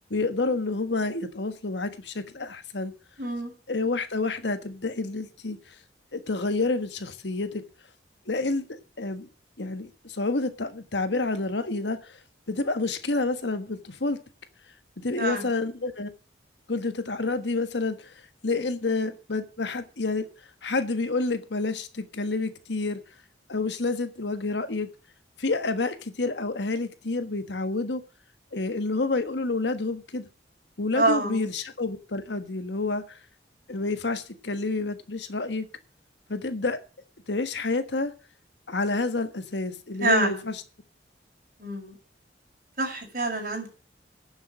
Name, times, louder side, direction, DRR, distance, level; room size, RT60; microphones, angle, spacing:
voice 1, 0.1-2.9 3.7-5.6 6.1-7.6 8.3-8.7 9.0-9.3 9.6-12.2 12.5-14.2 15.0-16.1 16.7-18.1 18.4-20.2 20.6-23.0 23.5-24.9 25.4-28.0 28.5-30.3 30.8-33.2 33.7-35.7 36.3-36.8 37.3-38.1 38.7-40.6, left 3 dB, 70° left, 1.4 m, -29 dB
voice 2, 3.2-3.5 15.2-15.5 30.9-31.4 40.0-40.4 41.6-42.0 42.8-43.7, right 2 dB, 50° right, 6.1 m, -26 dB
11.5 x 7.2 x 7.4 m
head